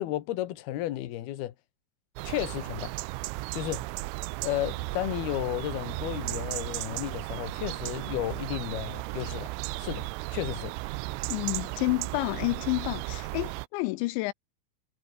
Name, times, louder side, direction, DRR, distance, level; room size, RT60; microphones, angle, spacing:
voice 1, 0.0-1.5 2.2-2.9 3.5-3.8 4.4-9.5 9.8-10.7, left 14 dB, 65° left, 2.9 m, -33 dB
sound 1, 2.2-13.7, right 23 dB, 85° right, 3.2 m, -35 dB
voice 2, 11.3-14.3, left 21 dB, 85° left, 2.7 m, -29 dB
omnidirectional pair, 5.9 m